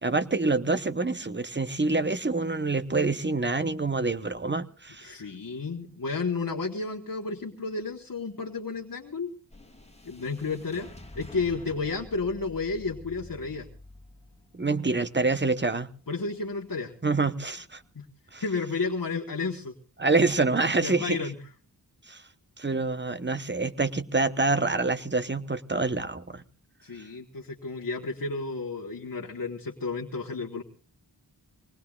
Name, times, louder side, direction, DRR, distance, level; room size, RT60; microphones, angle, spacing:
voice 1, 0.0-5.2 14.5-15.9 17.0-17.8 18.3-18.4 20.0-21.2 22.1-22.2 22.6-26.4, right 3 dB, 25° right, 12 dB, 1.0 m, -26 dB
voice 2, 5.0-9.3 10.0-10.9 11.1-13.7 16.1-16.9 17.9-18.1 18.4-19.7 20.8-21.4 26.8-30.6, left 4 dB, 50° left, 1 dB, 1.4 m, -32 dB
sound 1, 9.5-17.9, left 1 dB, 15° left, 2.7 m, -49 dB
25.0 x 20.0 x 2.4 m, 0.38 s
wide cardioid pair, 50°, 42 cm